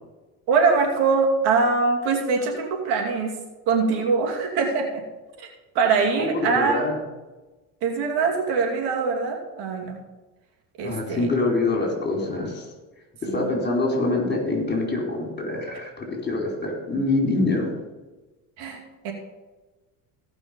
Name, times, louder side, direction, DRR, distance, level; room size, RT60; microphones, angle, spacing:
voice 1, 0.5-3.3 3.7-5.0 5.4-5.5 5.7-6.8 7.8-10.0 10.8-11.3 13.3-13.5 18.6-19.1, right 4 dB, 75° right, 1 dB, 2.6 m, -23 dB
voice 2, 6.1-7.0 10.8-12.6 13.2-17.7, left 2 dB, 25° left, 0 dB, 4.7 m, -25 dB
16.5 x 6.0 x 5.3 m, 1.1 s
supercardioid pair, 85°, 40 cm